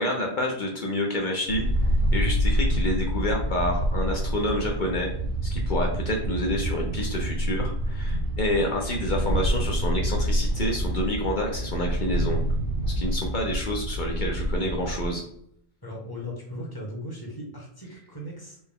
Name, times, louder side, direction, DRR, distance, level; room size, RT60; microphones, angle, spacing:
voice 1, 0.0-1.7 2.1-5.1 5.4-12.4 12.9-15.2, left 1 dB, 50° left, 0 dB, 0.8 m, -28 dB
sound 1, 1.5-15.1, equal, 70° right, 0.8 m, -27 dB
voice 2, 15.8-18.6, left 1 dB, 20° left, -3 dB, 1.2 m, -37 dB
4.3 x 2.2 x 3.6 m, 0.69 s
omnidirectional pair, 1.1 m